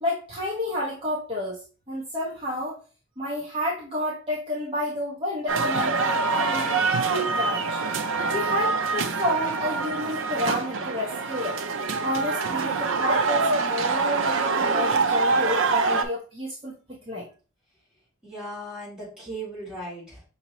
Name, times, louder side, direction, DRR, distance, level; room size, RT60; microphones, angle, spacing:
voice 1, 0.0-1.6 1.9-2.8 3.2-6.8 7.1-7.8 8.3-11.6 12.0-17.2, left 1 dB, 25° right, -6 dB, 0.9 m, -30 dB
sound 1, 5.5-16.0, right 4 dB, 60° right, 0.5 m, -25 dB
voice 2, 18.2-20.2, right 1 dB, 5° right, -8 dB, 2.4 m, -37 dB
5.8 x 2.8 x 2.9 m, 0.36 s
head